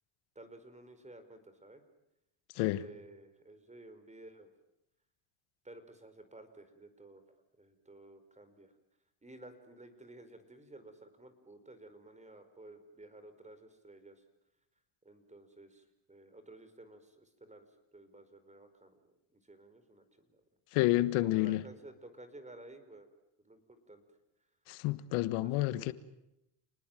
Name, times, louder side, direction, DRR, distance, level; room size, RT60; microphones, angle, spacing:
voice 1, 0.3-1.8 2.7-4.5 5.6-7.2 7.6-8.7 9.2-14.2 15.0-17.7 17.9-20.4 21.2-23.1 23.4-24.0 25.4-25.9, right 2 dB, 15° right, 4.9 m, -54 dB
voice 2, 20.7-21.6 24.7-25.9, left 17 dB, 85° left, 1.5 m, -29 dB
29.5 x 20.0 x 9.2 m
supercardioid pair, 95°, 49 cm